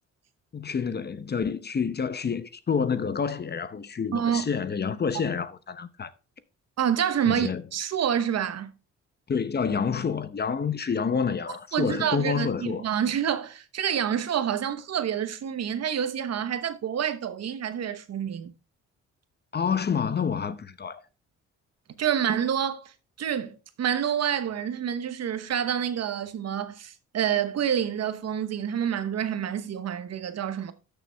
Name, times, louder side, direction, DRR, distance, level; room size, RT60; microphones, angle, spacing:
voice 1, 0.5-6.1 7.3-7.6 9.3-12.8 19.5-21.0, left 6 dB, 35° left, 0.8 m, -28 dB
voice 2, 4.1-4.5 6.8-8.7 11.7-18.5 22.0-30.7, right 9 dB, 55° right, 1.1 m, -28 dB
12.5 x 6.8 x 3.4 m
cardioid pair, 90°, 30 cm